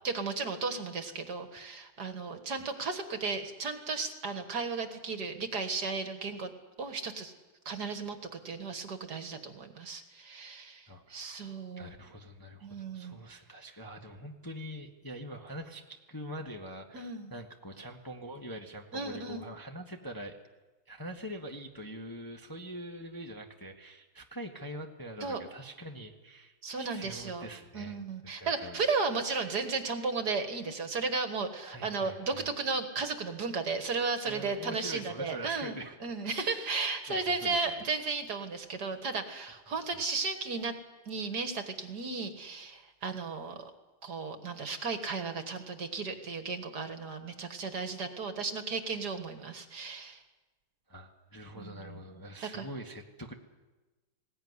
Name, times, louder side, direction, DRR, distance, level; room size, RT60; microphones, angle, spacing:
voice 1, 0.0-6.5 6.8-7.3 7.7-11.9 12.6-13.2 16.9-17.3 18.9-19.5 25.2-25.4 26.6-27.5 27.7-35.8 36.0-40.7 41.1-43.7 44.0-50.2 51.5-52.0 52.4-52.7, right 4 dB, 50° right, 7 dB, 2.0 m, -34 dB
voice 2, 10.9-11.4 11.8-20.4 20.9-28.8 31.6-32.5 34.2-36.0 36.2-36.7 37.1-37.7 50.9-53.3, equal, 10° left, 2 dB, 1.2 m, -44 dB
20.0 x 18.0 x 9.6 m, 1.2 s
omnidirectional pair, 2.3 m